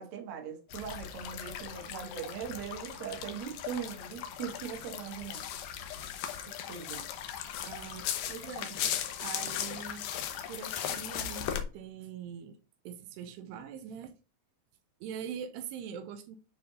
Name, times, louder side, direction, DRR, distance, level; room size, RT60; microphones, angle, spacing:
voice 1, 0.0-5.5 6.7-7.1, right 8 dB, 60° right, 2.2 m, -40 dB
sound 1, 0.7-11.6, left 9 dB, 85° left, 1.8 m, -38 dB
voice 2, 7.7-10.1 10.5-12.6 12.8-14.1 15.0-16.4, right 7 dB, 90° right, 2.9 m, -43 dB
9.3 x 3.4 x 3.9 m
omnidirectional pair, 4.8 m